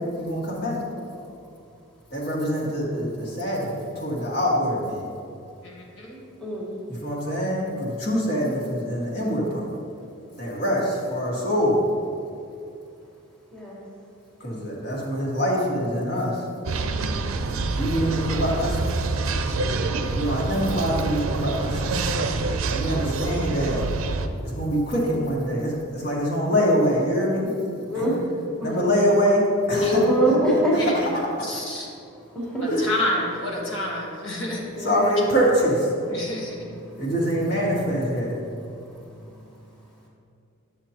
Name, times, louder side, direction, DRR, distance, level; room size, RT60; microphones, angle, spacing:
voice 1, 0.2-0.8 2.1-5.1 6.9-9.6 10.4-11.8 14.4-16.4 17.7-18.9 20.2-21.9 22.7-23.8 24.4-27.5 27.9-28.1 28.6-30.4 30.7-31.5 32.7-32.9 34.8-35.9 37.0-38.3, equal, 50° left, -4 dB, 1.8 m, -24 dB
voice 2, 5.6-6.2 29.8-30.0 30.8-30.9 31.4-31.9 32.6-34.6 36.1-36.7, left 1 dB, 65° left, -3 dB, 1.5 m, -29 dB
voice 3, 6.4-6.7 13.5-13.8 27.9-28.2 28.6-28.9 29.7-30.8 32.3-32.7 34.7-35.2, equal, 5° left, -6 dB, 1.5 m, -23 dB
sound 1, 16.6-24.3, right 3 dB, 85° right, 0.5 m, -26 dB
11.0 x 7.1 x 3.0 m, 2.6 s
head